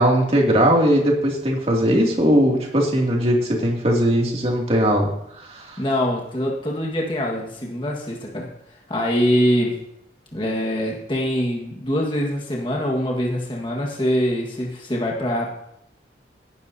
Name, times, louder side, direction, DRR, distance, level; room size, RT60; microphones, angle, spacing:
voice 1, 0.0-5.1 5.4-5.8, equal, 35° right, -1 dB, 2.7 m, -19 dB
voice 2, 5.8-8.5 8.9-9.8 10.3-15.5, equal, 30° left, -1 dB, 1.7 m, -23 dB
19.0 x 10.5 x 2.9 m, 0.76 s
head